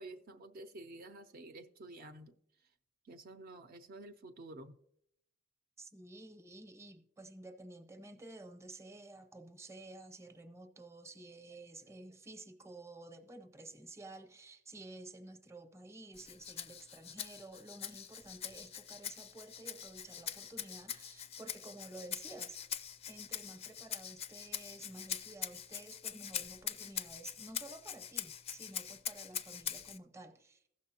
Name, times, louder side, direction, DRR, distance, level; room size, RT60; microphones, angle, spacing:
voice 1, 0.0-2.3 3.0-4.8, right 2 dB, 50° right, 0.5 m, -50 dB
voice 2, 5.8-22.6 23.1-30.6, right 2 dB, 15° right, 0.7 m, -52 dB
Rattle (instrument), 16.1-30.0, left 9 dB, 35° left, 0.4 m, -43 dB
15.5 x 6.4 x 2.8 m
head